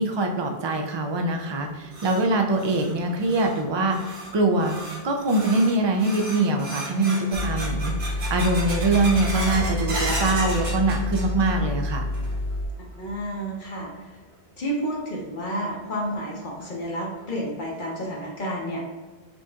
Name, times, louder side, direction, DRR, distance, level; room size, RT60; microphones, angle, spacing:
voice 1, 0.0-4.8 5.0-12.1, right 2 dB, 45° right, 3 dB, 0.3 m, -23 dB
sound 1, 1.5-11.7 11.9-12.6 12.9-13.0 13.8-13.9 15.5-15.6 16.0-16.1 16.6-16.7 17.2-17.3 17.8-18.2, right 1 dB, 80° right, 1.2 m, -35 dB
sound 2, 7.3-12.7, left 2 dB, 80° left, 0.9 m, -28 dB
voice 2, 13.0-14.1 14.6-18.8, equal, 55° left, -2 dB, 0.9 m, -30 dB
5.3 x 2.9 x 2.3 m, 1.3 s
omnidirectional pair, 1.0 m